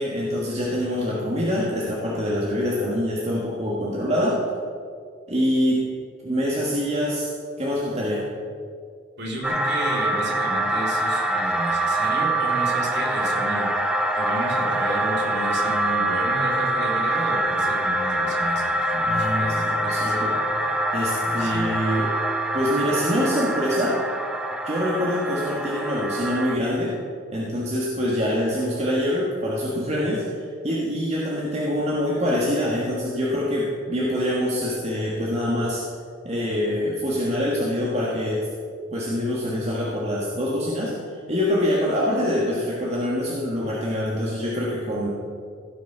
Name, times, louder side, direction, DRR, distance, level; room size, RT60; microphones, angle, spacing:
voice 1, 0.0-4.4 5.3-5.8 6.2-7.3 7.6-8.2 19.0-20.3 20.9-22.1 22.5-24.0 24.6-26.9 27.3-35.8 36.2-38.5 38.9-45.1, equal, 35° right, -5 dB, 1.6 m, -25 dB
voice 2, 9.2-13.7 14.1-20.3 20.6-20.7 21.3-21.8, right 1 dB, 60° right, -2 dB, 2.9 m, -32 dB
sound 1, 9.4-26.6, right 1 dB, 5° right, 0.6 m, -25 dB
16.5 x 6.3 x 5.6 m, 2.2 s
head